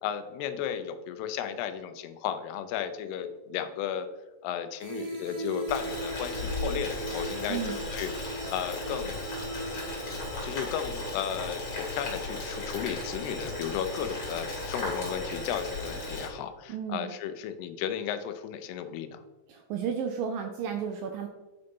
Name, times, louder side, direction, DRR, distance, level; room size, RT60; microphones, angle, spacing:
voice 1, 0.0-4.1 4.4-7.6 7.9-8.1 8.5-9.2 10.4-19.2, left 9 dB, 85° left, 9 dB, 2.7 m, -34 dB
sound 1, 4.8-10.7, right 2 dB, 65° right, 1.5 m, -39 dB
Boiling, 5.7-16.3, left 2 dB, 40° left, 3.2 m, -36 dB
voice 2, 16.7-17.1 19.5-21.3, right 7 dB, 85° right, 5 dB, 2.0 m, -33 dB
9.8 x 3.9 x 5.3 m, 1.1 s
omnidirectional pair, 4.6 m